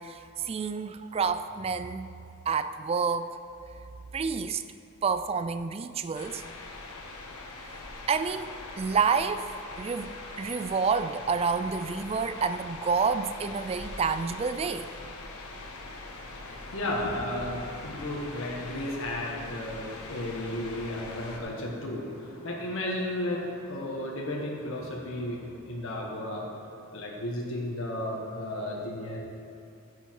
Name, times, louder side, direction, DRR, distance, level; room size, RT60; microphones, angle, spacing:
voice 1, 0.0-2.1 2.5-3.3 4.1-4.6 5.0-6.4 8.1-9.5 9.8-14.9, right 5 dB, 25° right, 11 dB, 0.3 m, -29 dB
sound 1, 6.1-21.4, left 2 dB, 85° left, 1.3 m, -42 dB
voice 2, 16.1-25.4 25.7-26.4 26.9-29.2, left 1 dB, 60° left, -3 dB, 1.6 m, -34 dB
12.5 x 8.1 x 4.6 m, 2.7 s
head